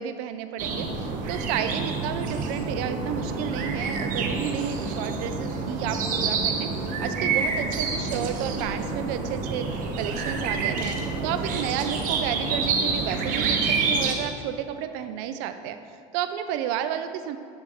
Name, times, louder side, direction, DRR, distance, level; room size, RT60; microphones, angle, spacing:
voice 1, 0.0-9.7 10.0-11.0 11.2-15.8 16.1-17.4, right 9 dB, 70° right, 9 dB, 0.6 m, -31 dB
sound 1, 0.6-14.1, right 4 dB, 50° right, 1.0 m, -28 dB
7.2 x 6.8 x 3.6 m, 2.3 s
supercardioid pair, 115°, 18 cm